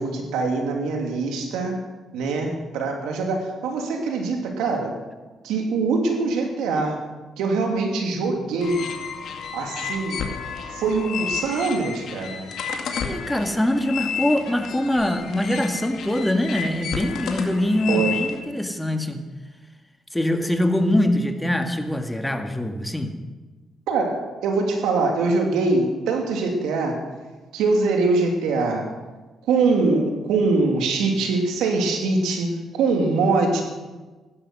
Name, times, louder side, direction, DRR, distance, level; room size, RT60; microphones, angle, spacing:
voice 1, 0.0-1.8 2.1-4.9 5.4-7.0 7.4-8.9 9.5-10.2 10.7-12.4 17.9-18.2 23.9-27.0 27.5-28.8 29.5-33.6, right 3 dB, 90° right, 2 dB, 3.0 m, -23 dB
sound 1, 8.6-18.4, left 6 dB, 70° left, 2.1 m, -31 dB
voice 2, 13.0-19.2 20.1-23.2, left 1 dB, 5° left, 4 dB, 1.9 m, -23 dB
15.5 x 12.0 x 6.3 m, 1.3 s
cardioid pair, 90°, 0 cm